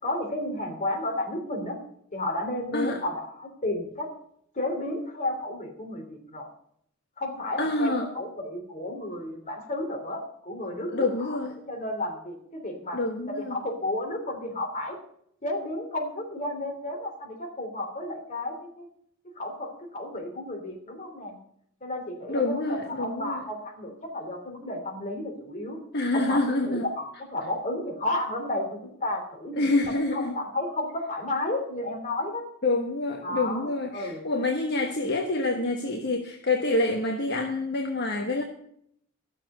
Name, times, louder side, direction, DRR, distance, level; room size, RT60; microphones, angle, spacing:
voice 1, 0.0-1.8 2.1-4.1 4.5-6.5 7.2-11.4 11.7-13.0 13.4-15.0 15.4-18.9 19.4-21.4 21.8-25.8 26.1-29.7 30.1-32.4 33.2-34.3, left 1 dB, 35° left, 1 dB, 3.1 m, -32 dB
voice 2, 7.6-8.1 10.9-11.6 12.9-13.6 22.3-23.4 25.9-26.9 29.6-30.3 32.6-38.4, left 2 dB, 55° left, 2 dB, 1.2 m, -27 dB
13.0 x 7.2 x 6.7 m, 0.69 s
head